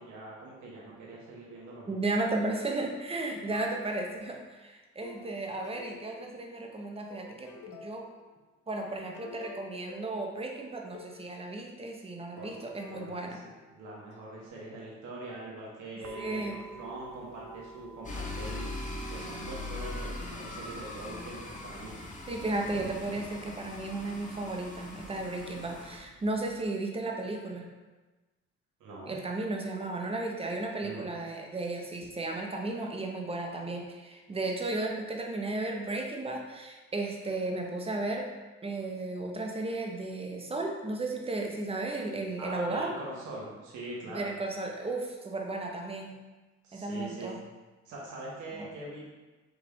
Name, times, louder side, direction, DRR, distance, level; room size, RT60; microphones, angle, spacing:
voice 1, 0.0-2.0 12.4-12.5 12.9-21.9 28.8-29.1 30.8-31.0 42.4-44.3 46.6-47.3 47.8-49.1, right 2 dB, 90° right, -4 dB, 1.3 m, -43 dB
voice 2, 1.9-8.0 8.7-13.4 16.2-16.6 21.1-21.2 22.3-27.7 29.1-38.3 38.6-42.9 44.1-46.2 46.7-47.4 48.5-48.7, right 2 dB, 20° right, 2 dB, 0.6 m, -34 dB
sound 1, 3.5-4.3 5.0-6.6 7.1-8.3 8.8-11.3 12.4-14.2, left 5 dB, 80° left, 0.7 m, -50 dB
sound 2, 16.0-26.7, right 4 dB, 70° right, 0.5 m, -50 dB
sound 3, 18.0-26.0, left 2 dB, 25° left, 0.7 m, -41 dB
4.9 x 2.4 x 3.5 m, 1.2 s
cardioid pair, 95°, 29 cm